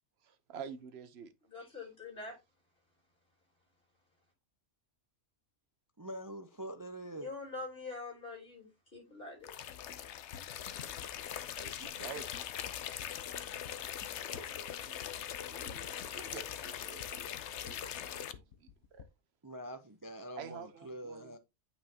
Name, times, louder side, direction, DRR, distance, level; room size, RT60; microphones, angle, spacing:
voice 1, 0.2-1.3 11.2-12.4 14.1-15.0 15.4-19.1 20.4-21.4, right 7 dB, 55° right, 1.0 m, -49 dB
voice 2, 1.5-2.4 7.1-9.6, left 3 dB, 40° left, 4.0 m, -44 dB
voice 3, 6.0-7.3 19.4-21.4, right 1 dB, 35° right, 0.3 m, -44 dB
sound 1, 9.4-18.3, left 10 dB, 65° left, 0.8 m, -41 dB
sound 2, 10.3-19.0, left 8 dB, 85° left, 1.2 m, -53 dB
9.1 x 5.6 x 2.8 m
omnidirectional pair, 1.4 m